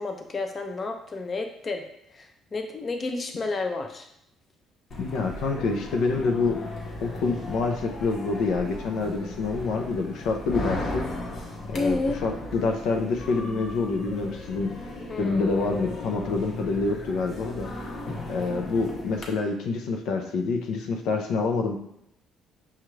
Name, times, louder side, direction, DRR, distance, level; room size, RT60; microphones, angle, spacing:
voice 1, 0.0-1.8 2.1-4.1 11.7-12.2 15.1-15.6, left 3 dB, 35° left, 4 dB, 0.5 m, -30 dB
sound 1, 4.9-19.3, left 1 dB, 50° left, 0.9 m, -36 dB
voice 2, 5.0-6.6 7.0-11.0 11.7-14.8 15.2-17.7 18.3-21.8, left 4 dB, 80° left, 3 dB, 0.5 m, -27 dB
5.6 x 2.4 x 3.1 m, 0.75 s
cardioid pair, 100°, 0 cm